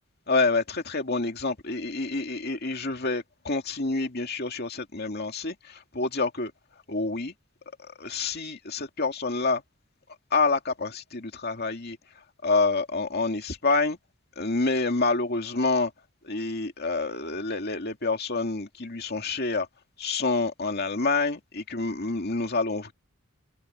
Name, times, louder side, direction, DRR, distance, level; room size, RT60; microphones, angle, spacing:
voice 1, 0.3-6.5 6.9-7.3 7.8-9.6 10.3-12.0 12.4-14.0 14.4-15.9 16.2-19.7 20.0-22.9, left 3 dB, 50° left, 2.4 m, -27 dB
head